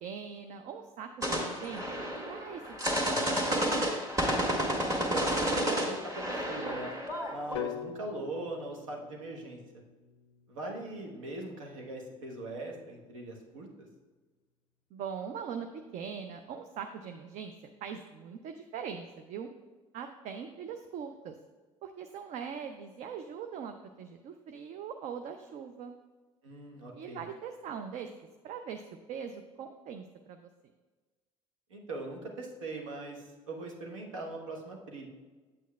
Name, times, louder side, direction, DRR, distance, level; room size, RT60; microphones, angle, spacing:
voice 1, 0.0-3.9 14.9-15.7 15.9-17.5 17.8-19.5 19.9-21.3 21.8-26.0 26.9-28.1 28.4-28.8 29.1-30.4, right 7 dB, 45° right, 6 dB, 0.5 m, -41 dB
sound 1, 1.2-7.5, equal, 20° right, 1.7 m, -31 dB
voice 2, 4.9-6.9 7.3-9.6 10.5-13.9 26.4-27.3 31.7-35.1, right 2 dB, 70° right, 1 dB, 1.1 m, -41 dB
sound 2, 7.6-11.6, left 10 dB, 65° left, 0.4 m, -44 dB
8.5 x 8.2 x 2.3 m, 1.3 s
figure-of-eight pair, 55°, 17 cm